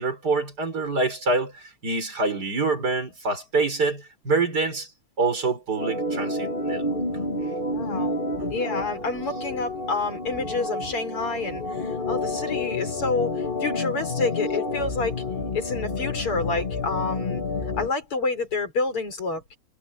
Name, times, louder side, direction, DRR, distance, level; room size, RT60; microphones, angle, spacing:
voice 1, 0.0-4.9 5.2-7.0, right 3 dB, 45° right, 5.2 m, -26 dB
Organ, 5.7-17.9, left 2 dB, 25° left, 1.7 m, -29 dB
voice 2, 7.7-8.2 8.5-15.2 15.5-17.4 17.8-19.6, left 3 dB, 85° left, 6.2 m, -28 dB
omnidirectional pair, 2.4 m